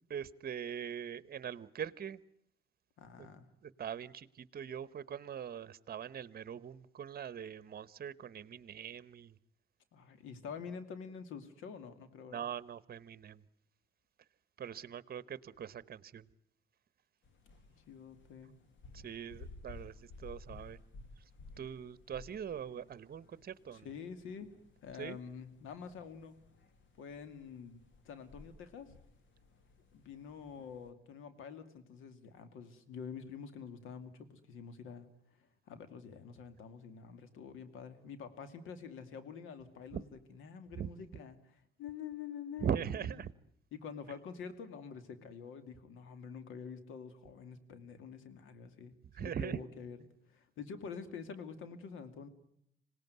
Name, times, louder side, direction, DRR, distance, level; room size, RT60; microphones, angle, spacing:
voice 1, 0.1-2.2 3.2-3.3 3.6-9.4 12.3-13.4 14.6-16.3 18.9-20.8 21.2-21.3 21.6-23.9 25.0-25.2 39.9-40.0 40.7-40.9 42.6-43.3 49.1-49.6, right 8 dB, 50° right, 18 dB, 1.1 m, -41 dB
voice 2, 3.0-3.5 9.9-12.4 17.9-18.5 21.6-21.7 23.7-24.5 24.8-26.4 27.0-28.9 29.9-42.8 43.7-50.0 50.3-52.3, left 6 dB, 85° left, 11 dB, 2.5 m, -47 dB
sound 1, 17.2-30.9, left 3 dB, 70° left, 2.5 m, -56 dB
26.5 x 18.5 x 9.5 m, 0.73 s
cardioid pair, 90°, 20 cm